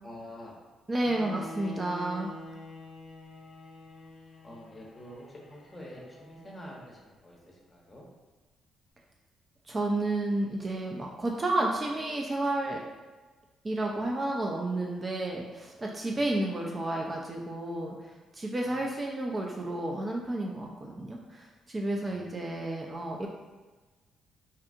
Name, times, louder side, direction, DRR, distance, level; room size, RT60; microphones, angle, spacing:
voice 1, 0.0-0.6 4.4-8.1 13.9-14.0 16.0-16.6 18.6-18.8 21.9-22.3, equal, 20° left, -3 dB, 0.7 m, -48 dB
voice 2, 0.9-2.3 9.7-12.8 13.6-23.3, right 2 dB, 25° right, -1 dB, 0.3 m, -31 dB
Bowed string instrument, 1.0-7.1, left 1 dB, 55° left, 0.3 m, -46 dB
2.7 x 2.4 x 2.4 m, 1.3 s
cardioid pair, 90°, 0 cm